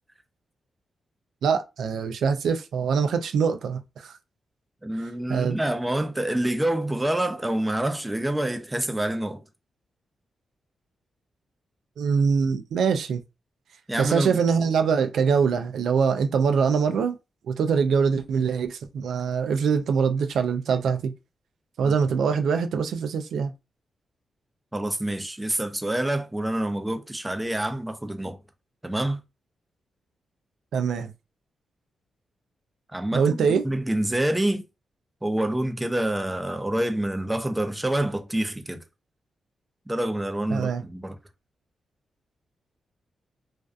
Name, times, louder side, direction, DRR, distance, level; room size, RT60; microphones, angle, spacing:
voice 1, 1.4-4.2 5.3-5.6 12.0-13.2 14.0-17.2 17.5-21.1 21.8-23.5 30.7-31.1 33.1-33.6 40.5-40.8, right 6 dB, 85° right, 0.3 m, -23 dB
voice 2, 4.8-9.4 13.9-14.4 24.7-28.4 28.8-29.2 32.9-34.6 35.2-38.8 39.9-41.2, right 1 dB, 10° right, 0.4 m, -27 dB
2.4 x 2.2 x 2.4 m
cardioid pair, 100°, 0 cm